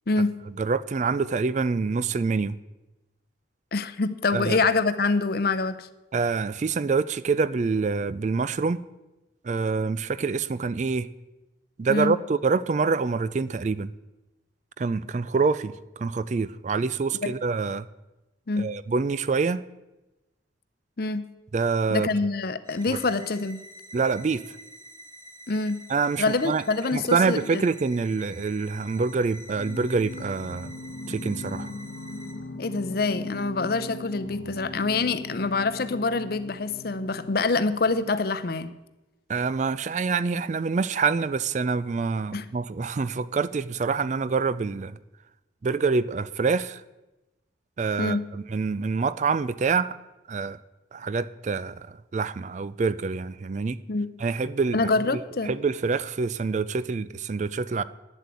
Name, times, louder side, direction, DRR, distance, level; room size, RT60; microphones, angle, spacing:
voice 1, 0.6-2.6 4.3-4.6 6.1-8.8 9.4-11.1 11.8-13.9 14.8-17.9 18.6-19.6 21.5-22.1 22.9-23.0 23.9-24.6 25.9-26.6 26.9-30.7 31.1-31.7 39.3-45.0 45.6-46.8 47.8-50.0 50.3-50.6 50.9-53.8 54.2-54.8 55.1-57.8, right 4 dB, 40° right, 16 dB, 0.3 m, -26 dB
voice 2, 3.7-5.9 11.9-12.1 17.2-17.3 18.5-18.7 21.0-21.2 21.9-23.6 25.5-25.8 26.2-27.7 32.6-38.7 42.3-42.4 48.0-48.2 53.9-54.1 54.7-55.5, left 3 dB, 50° left, 13 dB, 0.6 m, -26 dB
sound 1, 22.7-32.3, right 1 dB, 15° left, 1.8 m, -47 dB
Singing, 29.5-38.4, left 2 dB, 75° left, 1.0 m, -39 dB
9.8 x 7.7 x 8.2 m, 1.0 s
head